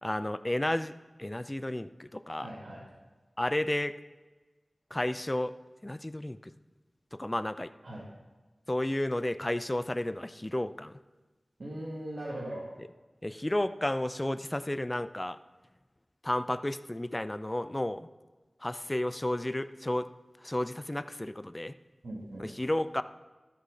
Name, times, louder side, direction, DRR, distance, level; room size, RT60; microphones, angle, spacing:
voice 1, 0.0-0.9 1.2-2.5 3.4-3.9 4.9-5.5 5.8-6.5 7.1-7.7 8.7-10.9 13.2-15.4 16.2-18.1 18.6-20.1 20.4-21.7 22.4-23.0, left 1 dB, 20° left, 13 dB, 0.5 m, -32 dB
voice 2, 2.4-2.9 7.8-8.1 11.6-12.7 22.0-22.5, right 1 dB, 80° right, -6 dB, 2.3 m, -39 dB
13.0 x 6.3 x 5.5 m, 1.2 s
wide cardioid pair, 70°, 0 cm